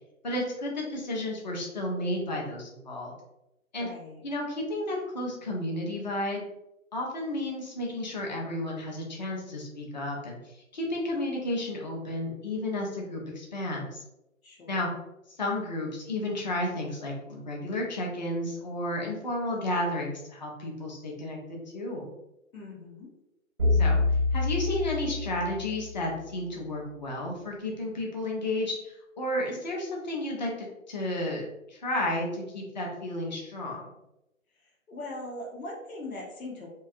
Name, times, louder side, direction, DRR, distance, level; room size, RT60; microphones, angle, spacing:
voice 1, 0.2-3.1 3.7-3.9 4.2-6.5 6.9-14.0 14.7-14.9 15.4-22.1 23.8-24.0 24.3-33.9, left 1 dB, 35° left, -1 dB, 0.4 m, -32 dB
voice 2, 3.8-4.2 14.4-14.8 22.5-23.1 34.6-36.7, left 1 dB, 80° left, -2 dB, 0.9 m, -40 dB
sound 1, 23.6-26.1, left 3 dB, 20° right, 0.5 m, -26 dB
2.7 x 2.3 x 2.4 m, 0.90 s
figure-of-eight pair, 150°, 41 cm